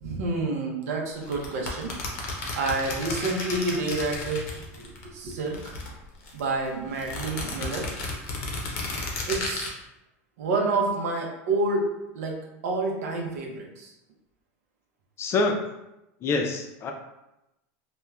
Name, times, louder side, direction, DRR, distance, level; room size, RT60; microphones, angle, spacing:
voice 1, 0.0-2.0 2.6-4.5 4.8-5.6 6.3-7.9 9.3-9.7 10.4-11.9 12.1-13.9, right 3 dB, 85° right, 1 dB, 0.6 m, -28 dB
sound 1, 1.2-5.0 5.3-6.4 7.0-9.7, left 2 dB, 80° left, 0.6 m, -33 dB
voice 2, 15.2-15.6 16.2-16.9, left 3 dB, 35° left, 3 dB, 0.4 m, -25 dB
2.9 x 2.1 x 2.3 m, 0.91 s
supercardioid pair, 120°, 8 cm